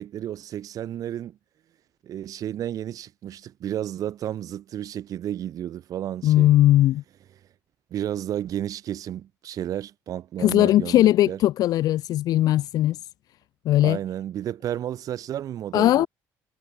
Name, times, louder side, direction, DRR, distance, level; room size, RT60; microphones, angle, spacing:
voice 1, 0.0-1.4 2.0-6.5 7.9-11.4 13.8-16.1, right 11 dB, 55° right, 1.4 m, -32 dB
voice 2, 6.2-7.0 10.4-13.0 13.7-14.0 15.7-16.1, left 14 dB, 60° left, 0.5 m, -19 dB
cardioid pair, 105°, 7 cm